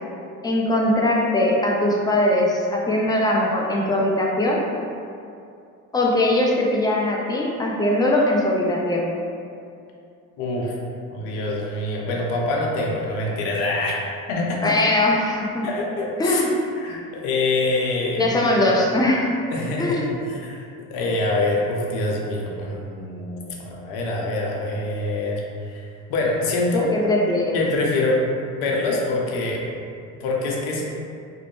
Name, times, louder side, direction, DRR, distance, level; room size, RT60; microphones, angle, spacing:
voice 1, 0.4-4.6 5.9-9.1 14.6-15.7 16.2-16.5 18.2-19.3 19.8-20.1 26.9-27.6, left 1 dB, 10° left, -2 dB, 0.4 m, -21 dB
voice 2, 10.4-10.8 11.1-14.0 14.3-14.8 15.6-16.5 16.8-18.4 19.5-26.9 27.5-28.2 28.6-29.6 30.2-30.8, left 2 dB, 75° left, -2 dB, 0.6 m, -25 dB
2.5 x 2.0 x 3.1 m, 2.5 s
hypercardioid pair, 60°, 40 cm